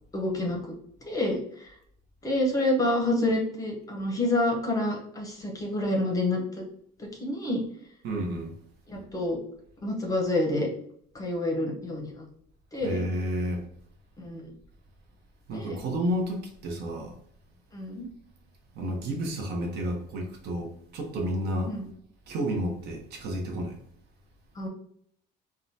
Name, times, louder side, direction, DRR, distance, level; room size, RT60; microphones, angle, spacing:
voice 1, 0.1-0.6 1.1-1.7 2.2-6.6 7.0-7.6 8.9-9.4 9.8-10.7 11.1-12.2 12.7-13.0 14.2-14.5 15.5-15.8 17.7-18.1 21.7-21.8 24.6-24.7, left 1 dB, 20° left, 0.7 m, -28 dB
voice 2, 8.0-8.5 12.8-13.7 15.5-17.1 18.8-21.7 22.3-23.8, equal, 60° right, 0.8 m, -31 dB
3.6 x 2.2 x 2.6 m
cardioid pair, 145°, 19 cm